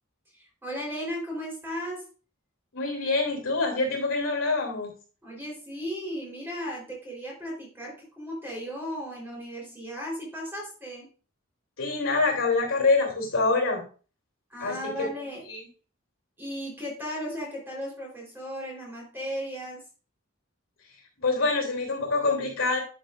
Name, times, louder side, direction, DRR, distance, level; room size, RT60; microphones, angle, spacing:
voice 1, 0.3-2.1 5.2-11.1 14.5-15.4 16.4-19.8, equal, 10° right, -3 dB, 3.8 m, -36 dB
voice 2, 2.7-4.9 11.8-13.8 14.6-14.9 15.5-15.6 21.2-22.8, left 3 dB, 85° left, 1 dB, 3.0 m, -25 dB
11.0 x 6.7 x 2.5 m, 0.37 s
head